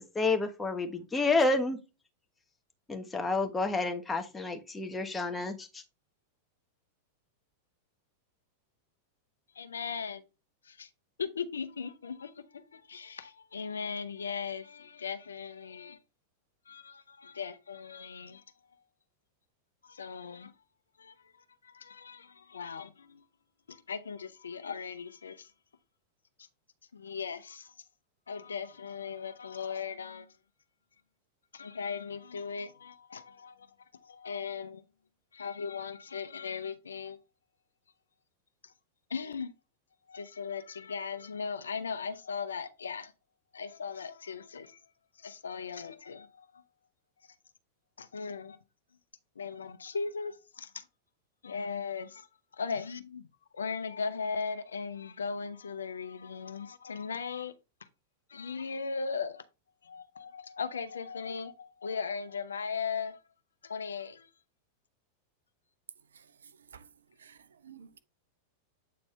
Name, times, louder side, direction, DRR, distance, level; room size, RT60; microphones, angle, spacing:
voice 1, 0.1-1.8 2.9-5.8, left 3 dB, 15° left, 1.2 m, -29 dB
voice 2, 9.5-10.3 10.6-10.9 11.2-16.0 16.7-18.8 19.8-20.5 21.0-21.3 21.6-23.2 23.7-25.5 26.4-26.5 26.9-27.9 28.3-30.4 31.5-34.8 35.3-37.2 38.6-38.7 39.1-39.5 40.1-43.1 43.5-44.8 45.2-46.6 47.2-47.4 48.0-48.6 49.4-50.9 51.4-52.3 52.5-53.3 53.5-57.5 57.8-57.9 58.3-59.5 59.8-63.2 63.6-64.3, left 5 dB, 80° left, 0.7 m, -38 dB
voice 3, 67.2-68.0, right 7 dB, 80° right, 0.7 m, -53 dB
8.4 x 4.3 x 3.2 m
hypercardioid pair, 95°, 0 cm